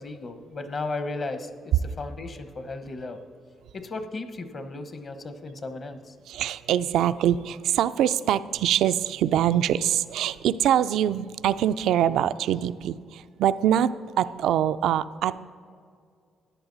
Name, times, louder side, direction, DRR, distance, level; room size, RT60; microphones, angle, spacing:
voice 1, 0.0-3.2 3.7-6.2, left 3 dB, 45° left, 9 dB, 1.0 m, -35 dB
voice 2, 6.3-13.9 14.2-15.4, right 10 dB, 80° right, 14 dB, 0.3 m, -24 dB
13.5 x 10.5 x 4.0 m, 2.2 s
cardioid pair, 90°, 0 cm